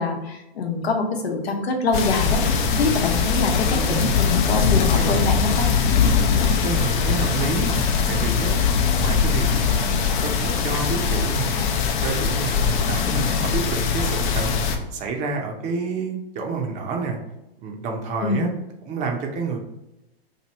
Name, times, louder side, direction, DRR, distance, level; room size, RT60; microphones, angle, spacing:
voice 1, 0.0-2.4 2.7-5.7 18.2-18.5, left 3 dB, 85° left, 3 dB, 1.0 m, -24 dB
sound 1, 1.9-14.8, left 6 dB, 50° left, 0.6 m, -21 dB
voice 2, 3.6-4.3 5.0-5.4 6.6-8.6 8.9-11.7 12.0-14.6 14.9-17.2 17.6-18.5 18.8-19.6, right 4 dB, 25° right, 2 dB, 0.5 m, -29 dB
2.9 x 2.7 x 4.1 m, 0.90 s
hypercardioid pair, 130°, 30 cm